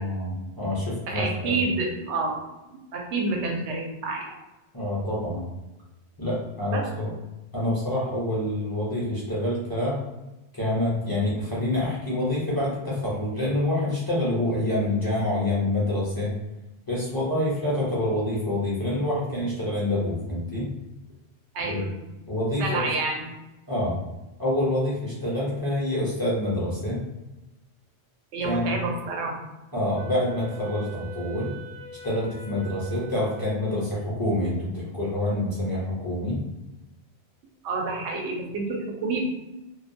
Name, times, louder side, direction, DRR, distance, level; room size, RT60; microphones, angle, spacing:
voice 1, 0.0-1.7 4.7-5.4 6.2-7.1 7.5-10.0 10.5-16.4 16.9-20.7 21.6-21.8 22.3-22.9 23.7-24.0 24.4-27.0 28.4-28.8 29.7-31.5 32.0-36.4, left 1 dB, 25° left, -8 dB, 0.5 m, -27 dB
voice 2, 1.1-2.4 2.7-4.4 6.7-6.8 21.5-21.9 22.5-23.3 28.3-29.3 37.6-39.2, right 3 dB, 85° right, 1 dB, 0.9 m, -28 dB
Wind instrument woodwind instrument, 30.0-34.3, right 5 dB, 50° right, 0.4 m, -43 dB
2.3 x 2.1 x 2.6 m, 1.0 s
omnidirectional pair, 1.1 m